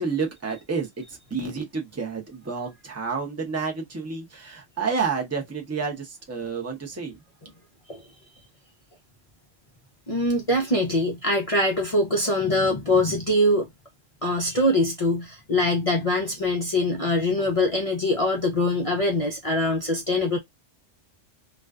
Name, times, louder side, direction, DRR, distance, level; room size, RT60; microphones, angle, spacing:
voice 1, 0.0-7.2, right 5 dB, 15° right, 0.6 m, -30 dB
voice 2, 10.1-13.7 14.2-20.4, left 1 dB, 45° left, 0.5 m, -23 dB
2.5 x 2.2 x 2.3 m
omnidirectional pair, 1.3 m